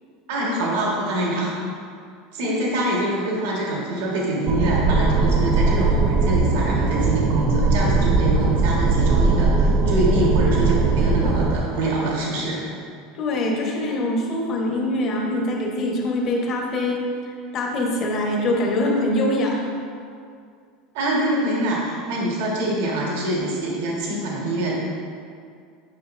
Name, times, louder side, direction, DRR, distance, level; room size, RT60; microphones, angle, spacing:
voice 1, 0.3-1.5 2.3-12.7 20.9-24.7, right 1 dB, 75° right, -4 dB, 1.5 m, -25 dB
sound 1, 4.5-11.6, right 3 dB, 30° right, 0.5 m, -19 dB
voice 2, 13.1-17.0 17.2-19.6, left 1 dB, 35° left, -1 dB, 1.1 m, -24 dB
9.6 x 5.7 x 2.6 m, 2.3 s
supercardioid pair, 160°, 0 cm